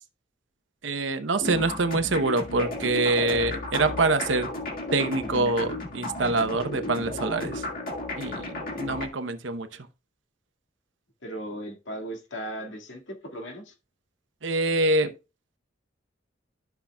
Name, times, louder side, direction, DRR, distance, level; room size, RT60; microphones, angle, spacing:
voice 1, 0.8-4.5 4.9-7.6 8.2-9.7 14.4-15.1, right 2 dB, 80° right, 0.9 m, -25 dB
sound 1, 1.4-9.1, left 2 dB, 50° left, 1.8 m, -33 dB
voice 2, 11.2-13.7, right 1 dB, 80° left, 2.1 m, -37 dB
14.0 x 5.7 x 2.3 m
head